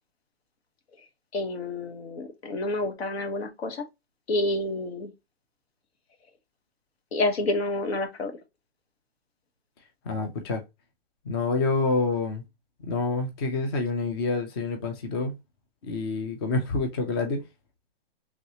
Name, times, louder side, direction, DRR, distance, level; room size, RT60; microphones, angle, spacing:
voice 1, 1.3-3.8 4.3-5.1 7.1-8.3, left 2 dB, 75° left, 1.1 m, -28 dB
voice 2, 10.0-10.6 11.2-12.4 12.8-15.4 15.8-17.4, left 3 dB, 25° left, 0.4 m, -27 dB
3.2 x 2.8 x 2.8 m
hypercardioid pair, 155°, 31 cm